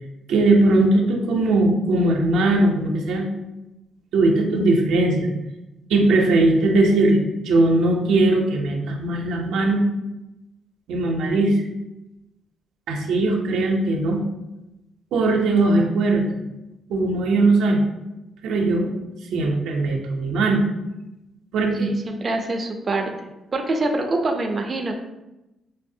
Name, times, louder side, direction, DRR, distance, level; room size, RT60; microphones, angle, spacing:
voice 1, 0.3-3.3 4.1-5.3 5.9-9.8 10.9-11.5 12.9-14.2 15.1-16.3 16.9-17.8 18.4-18.9 19.3-20.6 21.5-21.9, right 2 dB, 85° right, 1 dB, 0.6 m, -19 dB
voice 2, 21.7-23.1 23.5-24.9, right 2 dB, 35° right, 2 dB, 0.5 m, -25 dB
5.3 x 2.0 x 2.6 m, 0.96 s
cardioid pair, 90°, 0 cm